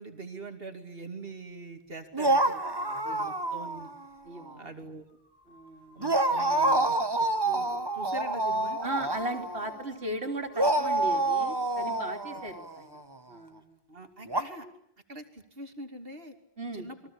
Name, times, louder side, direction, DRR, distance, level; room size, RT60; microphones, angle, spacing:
voice 1, 0.0-2.5 3.1-3.9 4.6-5.0 5.9-8.8 12.3-12.4 13.9-14.7 15.1-16.4 16.7-17.0, right 2 dB, 65° right, 6 dB, 3.0 m, -43 dB
sound 1, 2.1-4.1 4.4-4.5 6.0-9.9 10.6-13.0 14.3-14.4, right 2 dB, 25° right, 1.4 m, -28 dB
voice 2, 2.5-3.2 4.2-4.7 5.5-6.0 8.8-13.0 13.3-13.8 16.6-16.9, right 1 dB, 85° right, 4 dB, 3.3 m, -38 dB
sound 2, 4.1-4.3 5.1-12.8, left 2 dB, 15° left, 6.5 m, -56 dB
29.5 x 22.5 x 8.7 m, 0.71 s
omnidirectional pair, 1.0 m